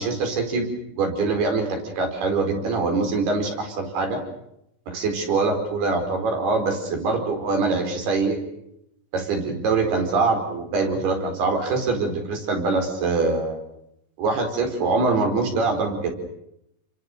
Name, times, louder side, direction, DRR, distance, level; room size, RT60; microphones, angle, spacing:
voice 1, 0.0-4.2 4.9-8.4 9.1-13.6 14.2-16.1, right 3 dB, 55° right, 5 dB, 6.7 m, -24 dB
29.5 x 25.0 x 6.8 m, 0.78 s
omnidirectional pair, 5.5 m